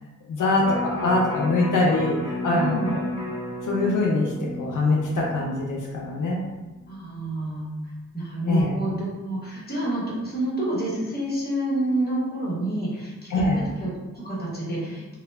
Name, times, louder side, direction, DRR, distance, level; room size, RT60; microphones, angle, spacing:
voice 1, 0.3-3.0 3.7-6.4 8.4-8.7 13.3-13.7, left 2 dB, 85° left, -3 dB, 0.5 m, -23 dB
Electric guitar, 0.6-6.8 7.2-7.3, left 1 dB, 15° right, 0.8 m, -34 dB
voice 2, 2.5-3.0 6.9-7.7 8.1-13.5 13.8-15.2, right 1 dB, 30° left, -7 dB, 1.0 m, -28 dB
2.1 x 2.1 x 3.2 m, 1.2 s
wide cardioid pair, 85°, 30 cm